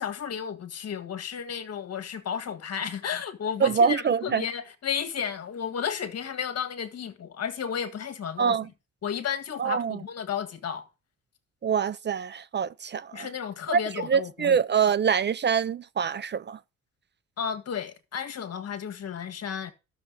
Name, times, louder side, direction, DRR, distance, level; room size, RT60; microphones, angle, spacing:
voice 1, 0.0-8.6 9.0-10.9 13.1-14.6 17.4-19.7, left 7 dB, 55° left, 1.7 m, -33 dB
voice 2, 3.6-4.4 8.4-8.7 9.6-10.0 11.6-13.3 13.7-13.8 14.1-16.6, right 6 dB, 35° right, 0.5 m, -25 dB
13.0 x 6.8 x 4.0 m
cardioid pair, 90°, 30 cm